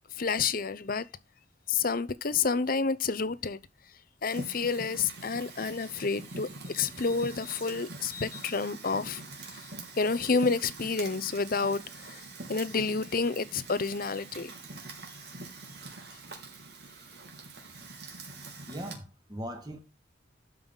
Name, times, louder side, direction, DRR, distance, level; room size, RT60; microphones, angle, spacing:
voice 1, 0.2-1.1 1.7-3.6 4.2-9.2 9.5-9.6 10.0-12.2 12.5-14.5, left 4 dB, 50° left, 0.8 m, -29 dB
Fire, 4.3-19.0, right 3 dB, 65° right, 3.1 m, -44 dB
voice 2, 18.7-19.8, equal, 25° right, 2.1 m, -39 dB
12.5 x 5.6 x 3.9 m
head